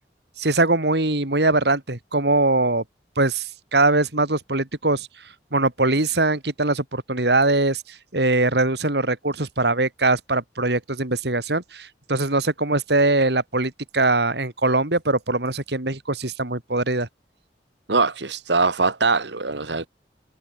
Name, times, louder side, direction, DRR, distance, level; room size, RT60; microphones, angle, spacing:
voice 1, 0.4-2.8 3.2-5.1 5.5-17.1, right 2 dB, 65° right, 3.2 m, -22 dB
voice 2, 17.9-19.9, right 4 dB, 80° right, 2.0 m, -22 dB
head